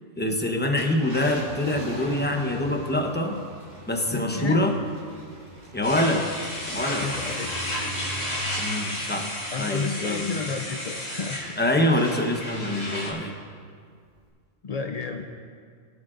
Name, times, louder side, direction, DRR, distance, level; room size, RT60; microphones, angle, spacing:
voice 1, 0.2-3.4 3.9-4.7 5.7-6.3 6.7-7.1 8.6-10.3 11.6-13.3, left 1 dB, 10° left, 2 dB, 0.8 m, -25 dB
Car, 0.6-11.4 11.9-12.0 14.1-14.3, equal, 75° right, 3.6 m, -41 dB
voice 2, 4.1-4.6 7.0-7.5 9.5-11.4 14.6-15.3, left 4 dB, 70° left, 3 dB, 0.3 m, -31 dB
sound 1, 5.8-13.1, left 1 dB, 30° left, 2.4 m, -32 dB
21.5 x 8.4 x 2.6 m, 2.1 s
omnidirectional pair, 1.3 m